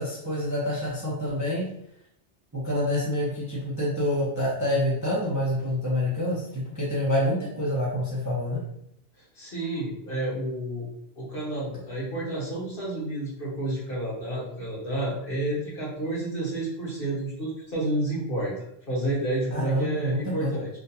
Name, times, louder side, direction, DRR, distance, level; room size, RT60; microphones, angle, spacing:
voice 1, 0.0-1.7 2.5-8.6 19.5-20.6, left 1 dB, 20° right, -6 dB, 0.7 m, -27 dB
voice 2, 9.3-10.9 11.2-20.7, right 1 dB, 55° left, -6 dB, 1.5 m, -30 dB
3.5 x 2.6 x 2.8 m, 0.75 s
omnidirectional pair, 1.2 m